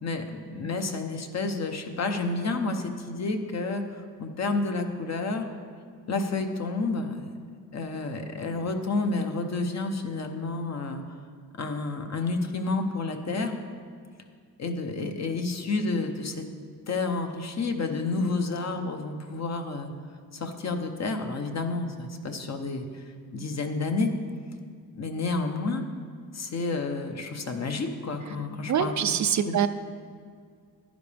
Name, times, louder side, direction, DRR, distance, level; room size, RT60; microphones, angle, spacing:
voice 1, 0.0-5.5 6.1-7.2 7.7-11.0 11.6-13.6 14.6-16.5 16.9-19.9 20.3-23.0 23.3-24.1 25.0-25.8 26.3-29.0 29.5-29.6, left 3 dB, 45° left, 5 dB, 0.9 m, -30 dB
voice 2, 28.7-29.7, right 8 dB, 50° right, 10 dB, 0.4 m, -24 dB
11.0 x 10.5 x 3.4 m, 2.1 s
cardioid pair, 110°, 38 cm